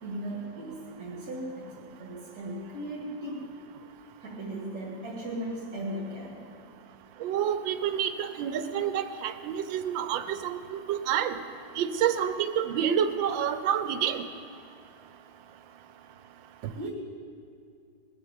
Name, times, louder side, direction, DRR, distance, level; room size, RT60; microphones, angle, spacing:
voice 1, 0.0-3.5 4.2-6.5 16.7-16.9, right 1 dB, 55° right, -4 dB, 2.5 m, -37 dB
voice 2, 7.2-11.4 11.8-14.2, right 9 dB, 85° right, 11 dB, 1.5 m, -28 dB
20.0 x 7.2 x 8.3 m, 2.5 s
omnidirectional pair, 2.0 m